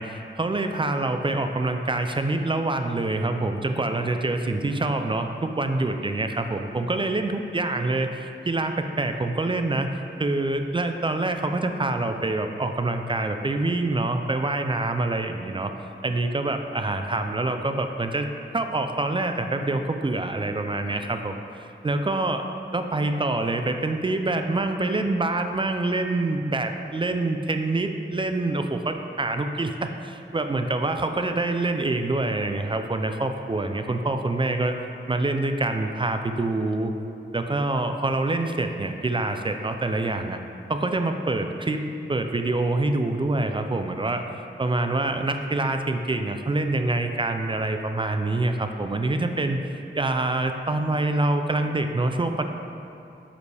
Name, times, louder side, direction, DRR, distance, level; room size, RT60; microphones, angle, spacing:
voice 1, 0.0-9.9 10.2-15.7 16.0-21.4 21.8-34.8 35.1-36.9 37.3-40.4 40.7-44.2 44.6-49.6 49.9-52.5, right 2 dB, 25° right, 6 dB, 0.4 m, -26 dB
8.0 x 5.0 x 3.3 m, 2.6 s
wide cardioid pair, 95°, 20 cm